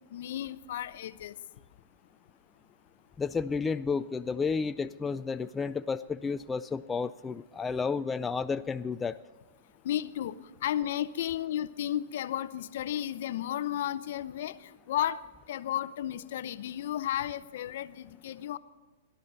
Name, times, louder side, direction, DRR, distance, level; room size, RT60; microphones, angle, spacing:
voice 1, 0.1-1.3 9.8-10.4 10.6-15.2 15.5-18.6, left 11 dB, 60° left, 14 dB, 0.7 m, -33 dB
voice 2, 3.2-9.2, left 5 dB, 15° left, 10 dB, 0.3 m, -31 dB
17.5 x 11.5 x 4.0 m, 1.3 s
hypercardioid pair, 140°, 0 cm